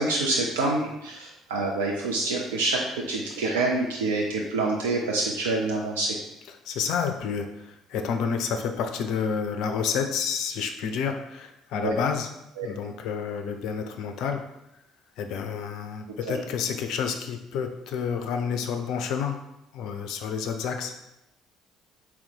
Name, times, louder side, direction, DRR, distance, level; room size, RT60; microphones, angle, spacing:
voice 1, 0.0-2.8 3.1-6.2 11.8-12.0 12.6-12.7 16.3-16.4, right 2 dB, 80° right, -1 dB, 0.4 m, -26 dB
voice 2, 6.7-12.3 12.6-14.4 15.2-19.4 19.7-20.9, left 6 dB, 60° left, 6 dB, 0.3 m, -29 dB
3.9 x 2.1 x 4.2 m, 0.89 s
figure-of-eight pair, 50°, 0 cm